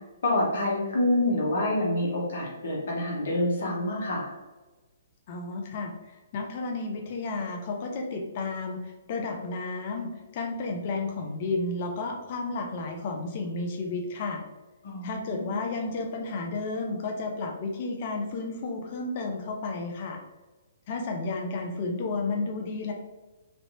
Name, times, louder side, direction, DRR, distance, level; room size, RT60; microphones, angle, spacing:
voice 1, 0.2-4.3 14.8-15.5, left 1 dB, 65° left, -3 dB, 1.2 m, -27 dB
voice 2, 5.3-14.4 15.0-20.2 20.9-22.9, left 3 dB, 45° left, 2 dB, 0.7 m, -32 dB
3.3 x 2.8 x 2.8 m, 1.2 s
hypercardioid pair, 135°, 0 cm